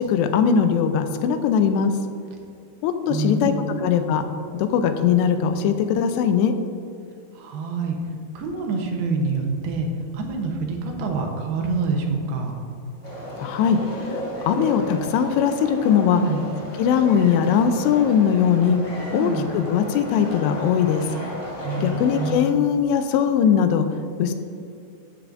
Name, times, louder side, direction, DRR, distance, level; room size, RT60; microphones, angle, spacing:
voice 1, 0.1-1.9 2.8-3.5 3.8-4.3 4.5-6.5 13.4-13.8 14.1-16.2 16.8-18.8 19.1-21.0 21.8-23.9 24.2-24.3, left 8 dB, 85° left, 8 dB, 2.7 m, -20 dB
voice 2, 3.1-3.9 7.3-8.0 8.3-9.9 10.1-12.6 16.0-16.6 19.1-19.6 21.6-22.5 24.3-24.4, right 3 dB, 75° right, 1 dB, 2.7 m, -26 dB
sound 1, 13.0-22.3, left 1 dB, 30° left, 1.4 m, -34 dB
12.5 x 8.3 x 2.6 m, 2.6 s
omnidirectional pair, 4.9 m